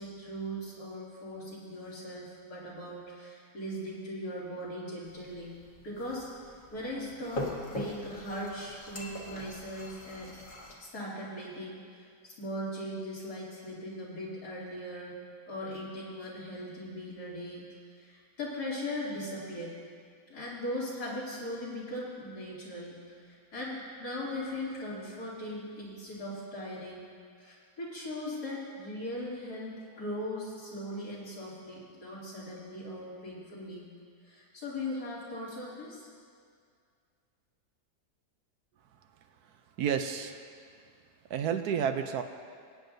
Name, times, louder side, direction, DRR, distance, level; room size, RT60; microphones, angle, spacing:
voice 1, 0.0-5.5 5.8-6.2 6.7-10.3 10.8-15.1 15.5-17.6 18.0-19.7 20.3-27.1 27.4-33.9 34.2-36.0, left 1 dB, 70° left, -8 dB, 3.3 m, -39 dB
sound 1, 5.0-10.8, left 1 dB, 30° left, 1.4 m, -42 dB
voice 2, 39.8-40.4 41.3-42.2, right 8 dB, 75° right, 7 dB, 1.1 m, -30 dB
21.5 x 9.3 x 2.7 m, 2.1 s
omnidirectional pair, 1.8 m